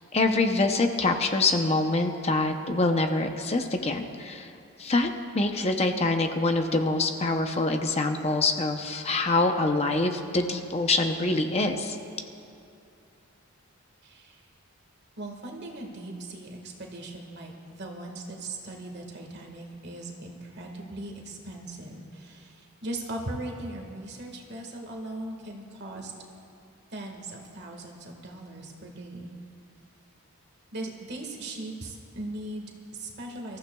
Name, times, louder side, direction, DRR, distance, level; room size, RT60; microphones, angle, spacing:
voice 1, 0.1-4.5 4.8-5.1 5.3-12.0, left 2 dB, 30° left, 5 dB, 0.6 m, -25 dB
voice 2, 14.0-14.4 15.2-26.1 26.9-29.3 30.7-33.6, right 1 dB, 50° right, 1 dB, 1.7 m, -39 dB
25.0 x 14.5 x 2.3 m, 2.6 s
head